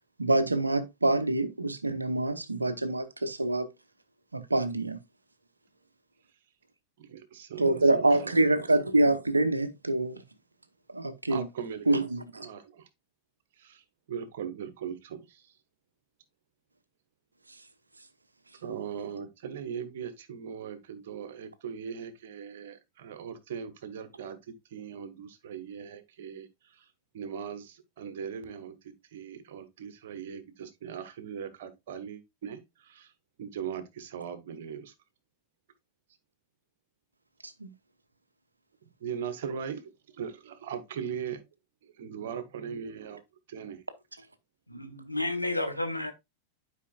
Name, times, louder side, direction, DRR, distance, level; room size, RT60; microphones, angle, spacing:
voice 1, 0.2-3.7 4.3-5.0 7.6-10.2 10.9-11.4 11.9-12.2 37.4-37.7, right 2 dB, 80° right, 0.9 m, -26 dB
voice 2, 7.0-8.8 11.3-12.9 13.5-15.6 18.6-33.1 33.4-34.9 38.8-41.5 41.8-43.2 43.5-43.8, right 7 dB, 55° right, 1.4 m, -40 dB
voice 3, 44.7-46.1, left 2 dB, 90° left, 1.2 m, -31 dB
11.5 x 5.2 x 2.4 m
figure-of-eight pair, 90°, 0 cm